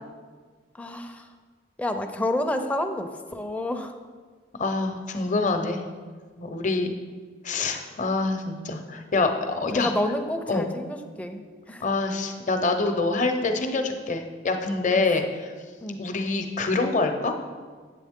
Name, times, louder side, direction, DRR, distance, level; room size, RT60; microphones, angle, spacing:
voice 1, 0.7-1.3 1.8-4.0 9.7-11.8 14.9-15.0 15.8-16.0, left 1 dB, 10° left, 6 dB, 0.4 m, -29 dB
voice 2, 4.5-5.8 6.4-6.9 7.4-9.9 10.5-10.7 11.8-15.5 16.0-17.3, left 3 dB, 45° left, 6 dB, 0.7 m, -25 dB
8.4 x 7.6 x 3.6 m, 1.6 s
head